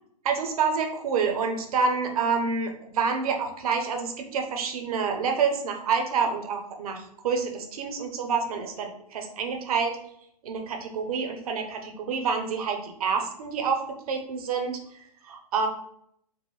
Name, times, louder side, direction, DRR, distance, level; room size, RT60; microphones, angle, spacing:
voice 1, 0.2-10.0 10.4-13.8 14.1-14.8 15.2-15.7, right 5 dB, 60° right, 4 dB, 1.0 m, -28 dB
4.6 x 2.2 x 4.0 m, 0.69 s
hypercardioid pair, 125°, 21 cm